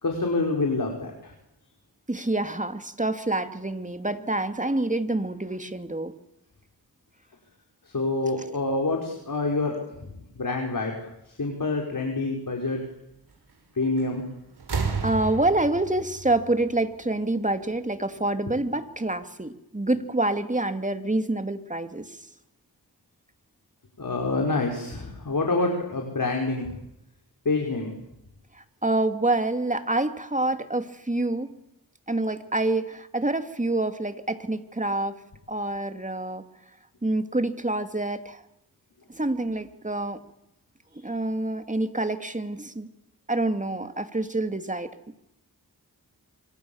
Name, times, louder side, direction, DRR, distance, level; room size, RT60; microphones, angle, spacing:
voice 1, 0.0-1.3 7.9-10.1 10.4-10.9 11.4-12.8 13.8-14.2 24.0-26.8 27.5-27.9, left 3 dB, 60° left, 1 dB, 5.3 m, -27 dB
voice 2, 2.1-6.1 15.0-22.2 28.8-31.6 32.1-35.2 35.5-36.4 37.0-38.4 39.1-40.2 41.0-42.9 43.3-44.9, right 2 dB, 20° right, 8 dB, 2.6 m, -27 dB
sound 1, 14.0-14.3 14.6-17.3 18.5-18.6, right 5 dB, 80° right, 5.3 m, -32 dB
26.5 x 26.0 x 7.3 m, 0.86 s
cardioid pair, 50°, 37 cm